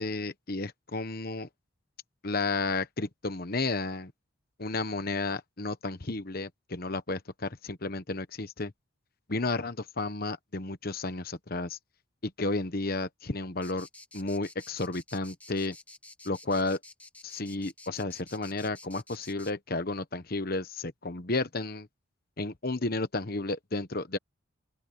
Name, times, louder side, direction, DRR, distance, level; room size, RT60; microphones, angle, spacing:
voice 1, 0.0-1.5 2.2-4.1 4.6-8.7 9.3-11.8 12.2-13.9 14.1-15.7 16.2-16.8 17.2-21.9 22.4-24.2, left 3 dB, 45° left, 1.1 m, -32 dB
sound 1, 13.6-19.5, left 2 dB, 5° left, 1.2 m, -50 dB
open air
head